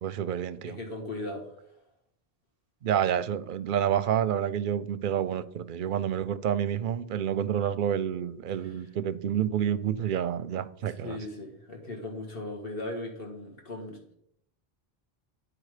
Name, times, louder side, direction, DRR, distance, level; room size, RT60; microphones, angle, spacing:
voice 1, 0.0-0.8 2.8-11.2, right 9 dB, 60° right, 0.6 m, -29 dB
voice 2, 0.7-1.7 8.6-8.8 10.9-14.1, left 2 dB, 65° left, 1.9 m, -38 dB
9.8 x 4.8 x 4.9 m
omnidirectional pair, 1.1 m